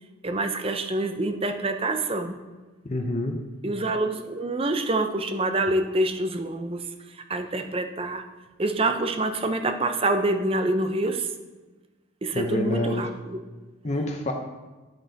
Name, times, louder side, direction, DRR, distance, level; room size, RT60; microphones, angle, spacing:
voice 1, 0.2-2.4 3.6-8.2 8.6-11.3 12.2-13.4, right 2 dB, 25° right, 7 dB, 0.6 m, -26 dB
voice 2, 2.8-3.4 12.3-13.0 13.8-14.3, left 2 dB, 35° left, 3 dB, 0.7 m, -27 dB
10.5 x 7.8 x 4.0 m, 1.3 s
head